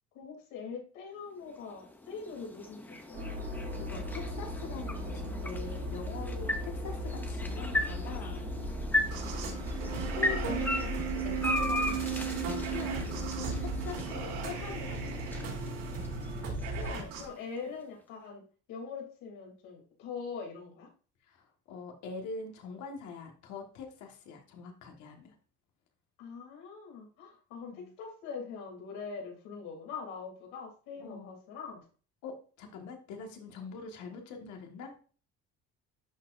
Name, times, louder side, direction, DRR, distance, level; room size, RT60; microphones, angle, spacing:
voice 1, 0.1-3.2 9.4-9.6 16.7-18.4 18.7-20.9 26.2-31.8, left 5 dB, 85° left, 0 dB, 3.0 m, -43 dB
sound 1, 1.4-17.6, left 1 dB, 5° left, 0.5 m, -37 dB
sound 2, 3.1-16.9, equal, 40° right, 1.5 m, -38 dB
voice 2, 3.7-8.5 9.8-15.4 21.2-25.3 27.7-27.9 31.0-31.3 32.2-35.0, left 5 dB, 60° left, 3 dB, 1.6 m, -44 dB
sound 3, 9.0-17.3, right 6 dB, 90° right, 3.0 m, -37 dB
11.0 x 4.2 x 2.5 m, 0.40 s
cardioid pair, 175°, 32 cm